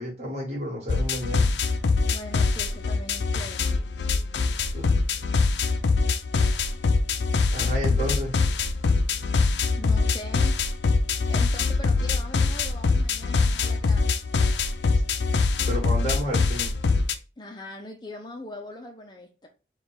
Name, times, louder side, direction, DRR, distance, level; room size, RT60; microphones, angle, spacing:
voice 1, 0.0-1.5 4.7-4.8 7.5-8.3 15.7-16.7, equal, 40° right, 1.8 m, -31 dB
sound 1, 0.9-17.1, left 4 dB, 85° left, 0.5 m, -23 dB
voice 2, 2.1-3.8 9.8-10.6 11.3-14.1 17.4-19.5, left 1 dB, 25° left, 0.5 m, -41 dB
4.3 x 2.3 x 4.7 m
head